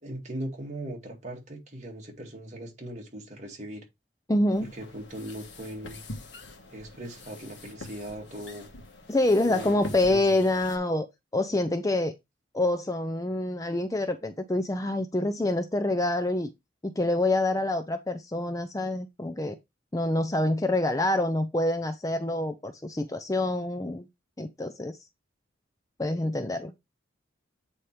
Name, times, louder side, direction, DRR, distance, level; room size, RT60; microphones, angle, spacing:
voice 1, 0.0-3.9 4.6-6.0 6.7-8.7 9.5-9.8 10.1-10.2, right 1 dB, 35° right, 2.2 m, -39 dB
voice 2, 4.3-4.7 9.1-11.1 11.3-12.1 12.5-16.5 16.8-19.6 19.9-24.1 24.4-25.0 26.0-26.7, left 2 dB, 15° left, 0.5 m, -26 dB
sound 1, 4.5-10.8, left 2 dB, 60° left, 1.5 m, -44 dB
8.5 x 4.4 x 3.3 m
head